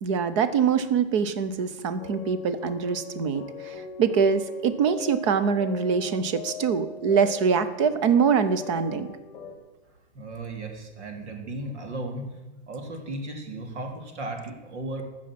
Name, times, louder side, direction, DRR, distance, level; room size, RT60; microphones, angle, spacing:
voice 1, 0.0-9.1, right 6 dB, 30° right, 13 dB, 0.6 m, -24 dB
sound 1, 2.0-9.6, left 7 dB, 10° left, 1.7 m, -40 dB
voice 2, 10.1-12.4 12.7-15.0, right 2 dB, 85° right, 4 dB, 2.9 m, -35 dB
14.5 x 6.3 x 7.3 m, 1.1 s
supercardioid pair, 175°, 34 cm